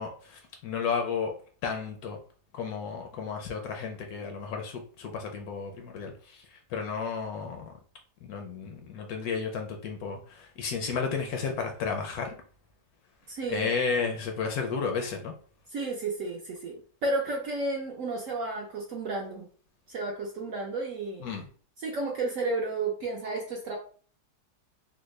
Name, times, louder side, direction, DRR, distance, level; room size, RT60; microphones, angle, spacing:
voice 1, 0.0-1.3 1.6-2.2 2.5-6.4 6.7-7.7 8.2-12.3 13.5-15.3 21.2-21.5, left 5 dB, 70° left, 1.0 m, -32 dB
voice 2, 13.3-13.7 15.7-16.7 17.0-19.5 19.9-21.2 21.8-23.8, right 3 dB, 65° right, 0.8 m, -32 dB
3.5 x 2.1 x 3.1 m
omnidirectional pair, 1.9 m